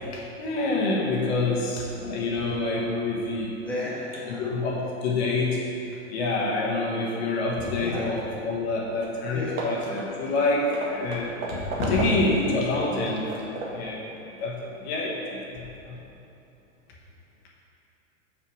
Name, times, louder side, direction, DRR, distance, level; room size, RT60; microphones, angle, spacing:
voice 1, 0.1-3.5 4.4-5.6 6.1-16.0, left 2 dB, 55° left, -3 dB, 1.3 m, -27 dB
voice 2, 3.6-4.5 7.8-8.0 9.3-9.5, left 1 dB, 5° left, -8 dB, 1.4 m, -33 dB
Hammer / Wood, 8.6-8.7 9.0-9.2 9.6-12.4 12.9-13.9, right 2 dB, 80° right, 1.5 m, -35 dB
6.1 x 5.7 x 4.8 m, 2.9 s
supercardioid pair, 150°, 39 cm